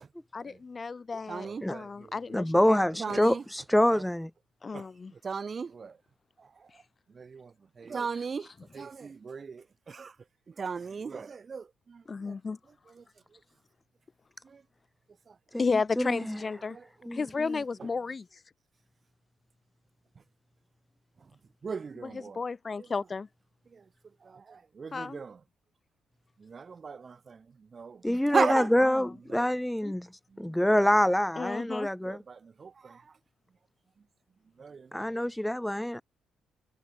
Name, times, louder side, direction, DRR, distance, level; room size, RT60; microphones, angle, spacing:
voice 1, 0.3-2.8 3.1-3.2 4.6-5.1 12.1-12.6 15.6-16.8 17.1-18.3 22.0-23.3 24.9-25.2 28.9-29.1 29.8-29.9 31.4-31.9, left 4 dB, 30° left, 5.5 m, -33 dB
voice 2, 1.3-2.4 3.0-3.4 3.9-4.0 4.7-4.9 5.1-6.0 6.4-6.5 7.1-10.1 10.5-12.3 13.0-13.1 14.4-14.6 15.3-15.4 16.7-16.8 21.6-22.4 22.8-22.9 23.7-23.8 24.2-25.4 26.4-27.4 27.7-28.7 29.3-29.5 30.3-30.5 32.0-33.0 34.6-35.0, right 5 dB, 40° right, 7.6 m, -36 dB
voice 3, 2.3-4.3 15.5-15.6 16.0-16.4 17.1-17.2 28.0-30.1 30.4-32.2 34.9-36.0, left 1 dB, 5° left, 4.8 m, -26 dB
cardioid pair, 90°, 0 cm